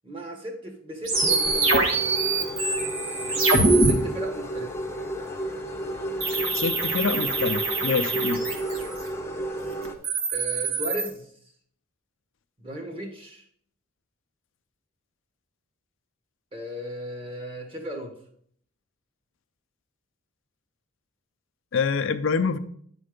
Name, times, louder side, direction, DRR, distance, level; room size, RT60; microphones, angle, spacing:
voice 1, 0.0-1.9 3.2-4.7 10.3-11.3 12.6-13.4 16.5-18.1, right 1 dB, 25° right, 2 dB, 1.4 m, -36 dB
sound 1, 1.1-10.0, right 1 dB, 10° left, 0.7 m, -32 dB
sound 2, 1.1-3.9 6.2-9.0 9.8-11.1, right 2 dB, 70° right, 1.3 m, -24 dB
voice 2, 6.5-8.4 21.7-22.6, left 5 dB, 60° left, 10 dB, 0.5 m, -26 dB
9.6 x 4.3 x 5.1 m, 0.63 s
head